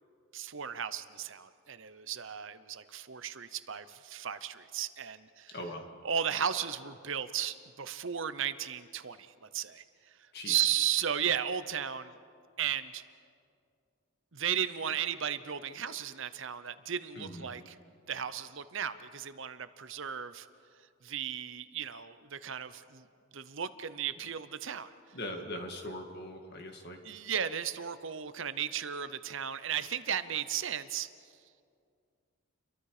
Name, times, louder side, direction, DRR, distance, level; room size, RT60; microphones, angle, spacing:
voice 1, 0.3-5.5 6.0-9.8 10.5-12.1 12.6-13.0 14.3-17.7 18.1-20.5 21.0-23.0 23.3-24.9 27.0-31.1, right 9 dB, 55° right, 13 dB, 0.8 m, -35 dB
voice 2, 5.5-5.8 10.3-10.7 17.2-17.5 25.1-27.0, left 1 dB, 45° left, 4 dB, 2.1 m, -41 dB
30.0 x 23.0 x 5.0 m, 2.3 s
head